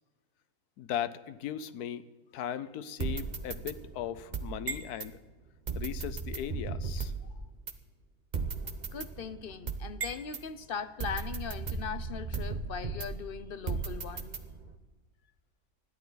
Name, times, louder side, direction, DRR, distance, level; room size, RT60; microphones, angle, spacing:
voice 1, 0.8-2.1 2.3-5.2 5.7-7.1, left 10 dB, 85° left, 1.2 m, -37 dB
sound 1, 3.0-5.1 5.7-7.3 7.7-7.8 8.3-10.4 11.0-13.3 13.7-14.8, right 4 dB, 35° right, 0.9 m, -36 dB
voice 2, 8.9-14.4, left 7 dB, 60° left, 0.6 m, -39 dB
20.5 x 14.0 x 4.0 m
omnidirectional pair, 1.6 m